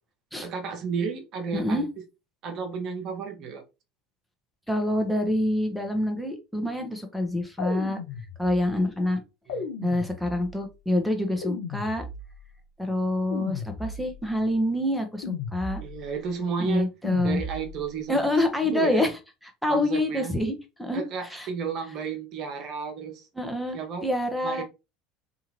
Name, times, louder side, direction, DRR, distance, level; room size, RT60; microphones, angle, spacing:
voice 1, 0.4-1.9 2.4-3.6 9.5-9.6 15.8-16.9 17.2-18.3 18.6-19.1 19.7-20.4 20.9-23.3 23.7-24.1 24.4-24.6, right 6 dB, 55° right, 0.7 m, -32 dB
voice 2, 1.5-1.9 4.7-8.0 8.4-9.2 9.8-12.0 12.8-15.8 16.6-17.4 18.1-19.2 19.6-21.5 23.3-24.6, left 1 dB, ahead, 0.8 m, -26 dB
sound 1, 7.6-8.8 9.5-10.7 11.4-12.5 13.3-14.3 15.2-16.2 17.0-17.9, left 4 dB, 70° left, 0.6 m, -36 dB
2.8 x 2.4 x 2.9 m
hypercardioid pair, 70°, 0 cm